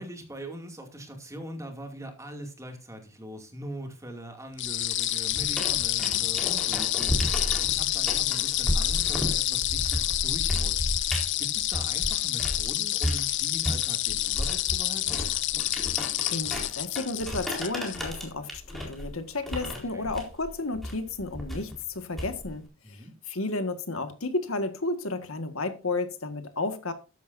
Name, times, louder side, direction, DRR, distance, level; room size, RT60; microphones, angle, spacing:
voice 1, 0.0-15.2 19.9-20.1 22.8-23.1, right 1 dB, 15° right, 2.5 m, -42 dB
sound 1, 4.6-18.0, left 14 dB, 55° left, 0.6 m, -28 dB
sound 2, 5.3-12.7 13.0-22.6, equal, ahead, 4.2 m, -33 dB
voice 2, 15.9-22.7 23.3-26.9, left 3 dB, 70° left, 1.7 m, -32 dB
14.0 x 11.0 x 2.7 m
head